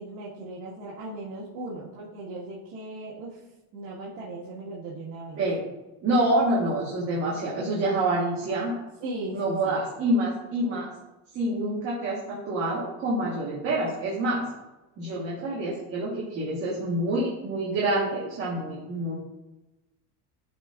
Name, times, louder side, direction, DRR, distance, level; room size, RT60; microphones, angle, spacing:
voice 1, 0.0-3.4 3.7-5.4 9.0-9.8, right 2 dB, 75° right, -6 dB, 1.9 m, -38 dB
voice 2, 6.0-8.8 9.3-10.9 11.3-14.5 15.0-19.1, right 1 dB, 35° right, -5 dB, 1.4 m, -27 dB
11.5 x 4.3 x 2.5 m, 1.0 s
cardioid pair, 160°, 40 cm